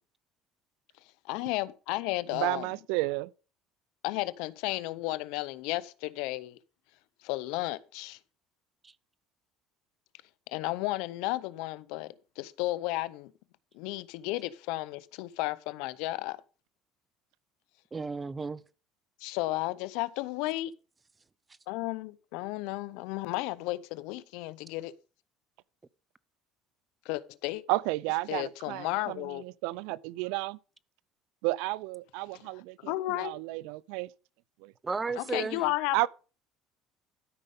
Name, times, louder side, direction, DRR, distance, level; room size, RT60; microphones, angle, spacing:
voice 1, 1.3-2.7 4.0-6.6 7.2-8.2 10.5-13.3 13.7-16.4 19.2-20.7 21.7-24.9 27.0-27.6 28.3-29.4 32.8-33.3 35.2-36.1, left 18 dB, 80° left, 0.6 m, -33 dB
voice 2, 2.3-3.3 27.7-30.6 31.4-34.1 34.6-34.7 35.9-36.1, right 21 dB, 80° right, 0.4 m, -32 dB
voice 3, 17.9-18.6 34.8-35.6, right 4 dB, 20° right, 0.6 m, -33 dB
12.5 x 5.5 x 5.2 m
supercardioid pair, 90°, 0 cm